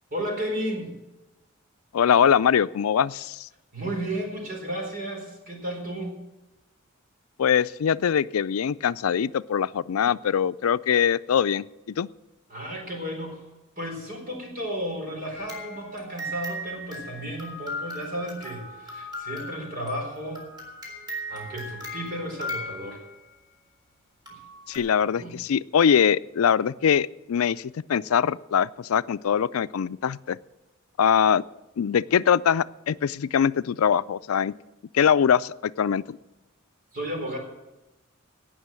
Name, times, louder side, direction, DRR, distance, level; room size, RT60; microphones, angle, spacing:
voice 1, 0.1-1.0 3.7-6.2 12.5-13.4 13.8-20.5 21.3-23.0 24.3-24.4 25.1-25.3 36.9-37.4, right 1 dB, 45° right, 1 dB, 4.1 m, -33 dB
voice 2, 1.9-3.5 7.4-12.1 24.7-30.4 31.0-31.4 31.8-34.5 34.9-36.2, left 8 dB, 90° left, 17 dB, 0.4 m, -22 dB
sound 1, 15.3-23.4 24.3-24.8, left 1 dB, 20° right, 3.9 m, -38 dB
17.5 x 6.4 x 7.6 m, 1.0 s
head